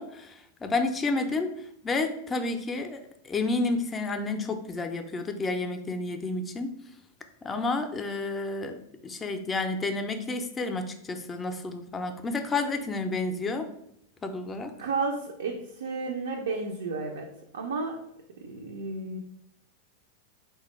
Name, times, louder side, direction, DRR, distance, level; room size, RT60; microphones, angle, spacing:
voice 1, 0.0-1.5 1.8-6.7 7.4-13.7 14.2-14.7, left 3 dB, 20° left, 7 dB, 0.4 m, -30 dB
voice 2, 14.8-18.0 18.4-19.2, right 4 dB, 85° right, 1 dB, 0.4 m, -32 dB
3.4 x 2.1 x 3.0 m, 0.75 s
hypercardioid pair, 115°, 0 cm